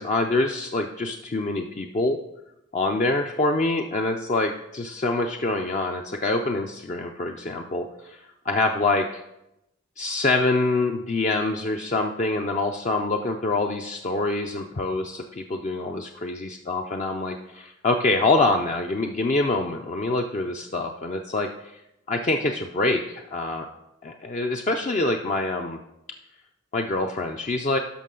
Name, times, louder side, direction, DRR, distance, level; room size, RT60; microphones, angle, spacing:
voice 1, 0.0-2.2 2.7-8.2 8.4-9.2 10.0-21.8 22.1-23.7 24.0-25.8 26.7-27.8, left 2 dB, 35° left, 3 dB, 0.4 m, -25 dB
12.0 x 5.4 x 3.8 m, 0.87 s
head